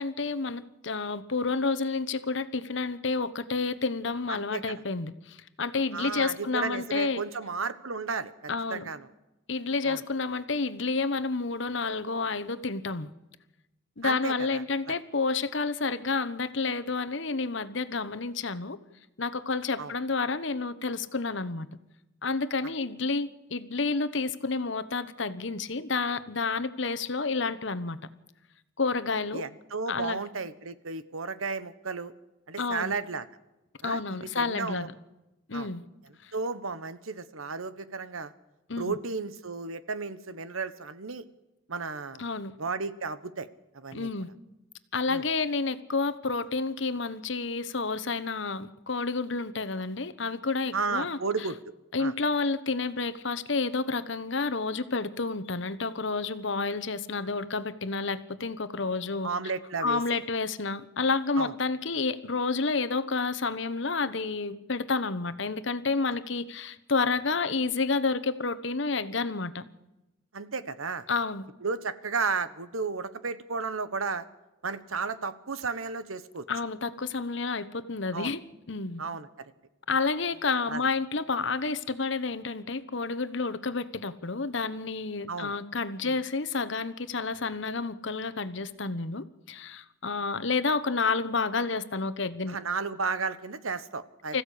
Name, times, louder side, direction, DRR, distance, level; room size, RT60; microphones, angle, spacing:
voice 1, 0.0-7.2 8.5-8.8 9.5-13.1 14.0-18.8 19.2-21.7 22.2-28.0 28.8-29.4 29.9-30.2 32.6-32.9 33.8-34.9 35.5-35.8 36.2-36.3 38.7-38.9 42.2-42.5 43.9-44.3 44.9-51.2 51.9-59.3 59.8-69.6 71.1-71.5 76.5-78.4 78.7-79.0 79.9-92.6 94.3-94.4, left 4 dB, 60° left, 13 dB, 1.1 m, -30 dB
voice 2, 4.3-4.8 5.9-9.1 9.8-10.0 14.0-14.9 19.8-19.9 29.3-32.1 32.5-33.3 33.8-34.9 35.5-35.7 36.3-38.3 38.8-41.2 41.7-42.2 42.6-43.5 43.7-44.1 45.1-45.2 50.7-51.6 52.0-52.1 59.2-60.0 61.4-61.5 70.3-71.0 71.6-74.3 74.6-76.4 78.1-78.3 79.0-79.5 80.7-80.8 85.3-85.5 86.0-86.2 92.5-94.4, right 4 dB, 90° right, 13 dB, 1.2 m, -33 dB
25.0 x 15.0 x 8.6 m, 0.99 s
head